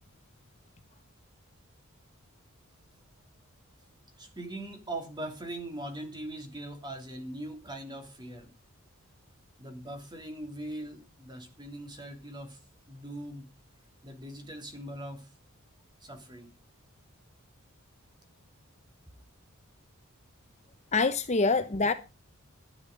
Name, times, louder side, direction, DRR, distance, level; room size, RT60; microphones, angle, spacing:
voice 1, 4.2-8.5 9.6-13.6 14.0-15.3 16.0-16.5, right 1 dB, 20° right, 2.9 m, -41 dB
voice 2, 20.9-21.9, left 3 dB, 30° left, 0.9 m, -25 dB
11.5 x 11.0 x 5.2 m
head